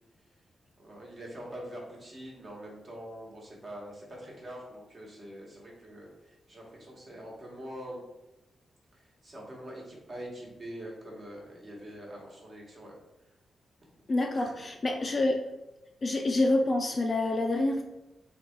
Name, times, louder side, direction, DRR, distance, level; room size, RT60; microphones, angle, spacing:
voice 1, 0.8-8.0 8.9-13.0 14.0-14.1 14.3-14.5 14.9-15.1, equal, 35° right, -3 dB, 1.2 m, -44 dB
voice 2, 14.1-15.5 16.0-17.8, left 2 dB, 30° left, 3 dB, 0.4 m, -27 dB
3.8 x 2.3 x 4.3 m, 0.97 s
wide cardioid pair, 130°, 0 cm